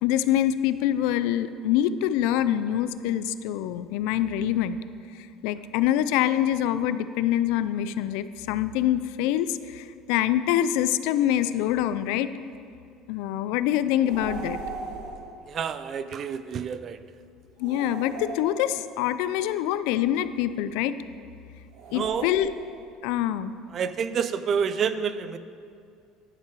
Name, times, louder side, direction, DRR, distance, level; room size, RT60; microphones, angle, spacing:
voice 1, 0.0-4.8 5.2-12.3 13.1-14.6 17.6-20.9 21.9-22.5 23.0-23.5, left 11 dB, 75° left, 13 dB, 0.3 m, -25 dB
sound 1, 14.0-15.3 17.6-19.0 21.7-22.9, right 3 dB, 60° right, 1.4 m, -38 dB
voice 2, 15.5-17.0 21.9-22.3 23.7-25.4, right 7 dB, 30° right, 13 dB, 0.3 m, -28 dB
11.0 x 6.7 x 4.7 m, 2.3 s
cardioid pair, 165°, 0 cm